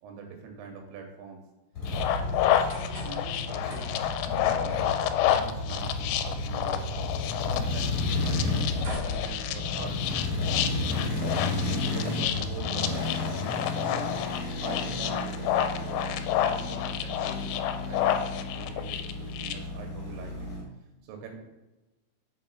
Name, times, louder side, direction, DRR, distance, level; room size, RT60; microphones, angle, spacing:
voice 1, 0.0-1.4 2.2-3.9 4.2-6.9 7.4-11.1 11.8-13.1 13.8-14.2 14.6-17.6 17.9-20.5 21.0-21.4, right 5 dB, 80° right, 3 dB, 3.2 m, -44 dB
sound 1, 1.7-20.6, left 2 dB, 70° left, 1.7 m, -32 dB
sound 2, 1.9-19.5, left 11 dB, 85° left, 3.2 m, -30 dB
sound 3, 2.4-10.1, equal, 65° right, 1.4 m, -46 dB
7.4 x 3.5 x 4.1 m, 1.0 s
omnidirectional pair, 6.0 m